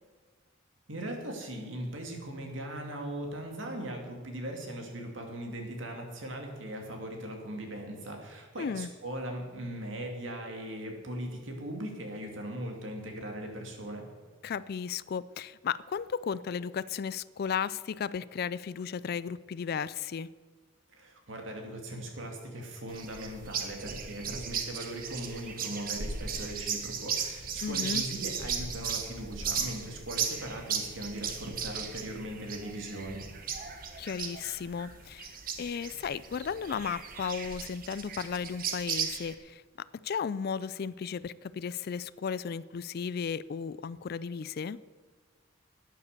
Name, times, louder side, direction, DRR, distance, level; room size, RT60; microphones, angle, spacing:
voice 1, 0.9-14.1 20.9-33.2, right 1 dB, 70° right, 2 dB, 2.6 m, -39 dB
voice 2, 8.6-8.9 14.4-20.3 27.6-28.1 34.0-39.6 40.0-44.8, left 6 dB, 50° left, 18 dB, 0.3 m, -35 dB
sound 1, 22.9-39.4, right 6 dB, 45° right, 1.3 m, -36 dB
12.0 x 9.6 x 6.8 m, 1.4 s
head